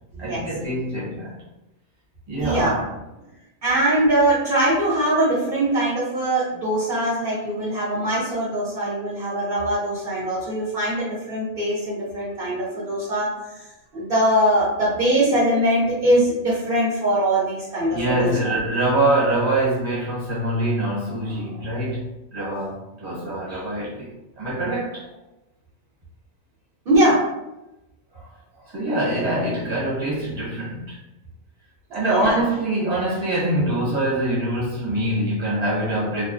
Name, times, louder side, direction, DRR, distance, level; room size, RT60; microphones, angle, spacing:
voice 1, 0.2-1.3 2.3-2.8 17.9-25.1 28.1-28.3 28.6-31.0 31.9-36.3, right 1 dB, 35° right, -7 dB, 1.1 m, -24 dB
voice 2, 2.4-2.8 3.6-13.6 13.9-18.3 26.9-27.2 32.0-32.4, right 1 dB, 55° right, -8 dB, 0.8 m, -22 dB
2.4 x 2.3 x 2.5 m, 0.96 s
omnidirectional pair, 1.2 m